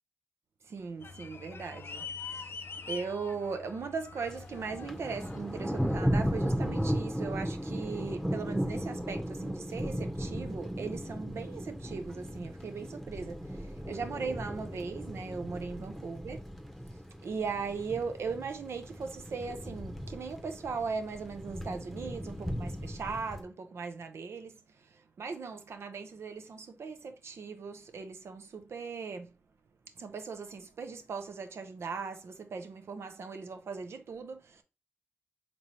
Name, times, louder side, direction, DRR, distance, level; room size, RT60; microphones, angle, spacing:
voice 1, 0.6-16.4 17.2-29.3 30.0-34.6, right 5 dB, 80° right, 0.6 m, -39 dB
sound 1, 1.0-6.0, left 5 dB, 60° left, 0.4 m, -44 dB
Thunder, 4.2-23.4, equal, ahead, 0.8 m, -36 dB
4.0 x 3.0 x 3.1 m
cardioid pair, 40°, 4 cm